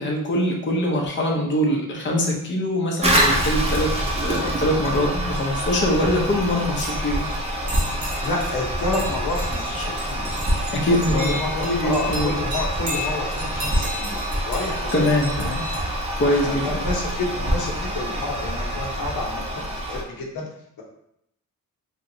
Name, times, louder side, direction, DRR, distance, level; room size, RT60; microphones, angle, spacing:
voice 1, 0.0-3.9 4.2-7.2 10.7-11.4 11.6-12.3 14.9-15.6 16.2-16.8, left 1 dB, 35° left, 0 dB, 0.6 m, -23 dB
Toilet flush, 3.0-20.0, equal, 20° right, 0.6 m, -26 dB
sound 1, 6.8-8.5 8.8-15.8, equal, 90° right, 1.3 m, -34 dB
voice 2, 8.0-10.3 10.9-14.2 14.5-15.1 16.3-20.5, left 2 dB, 80° left, -2 dB, 0.9 m, -29 dB
3.1 x 2.9 x 2.7 m, 0.73 s
cardioid pair, 90°, 35 cm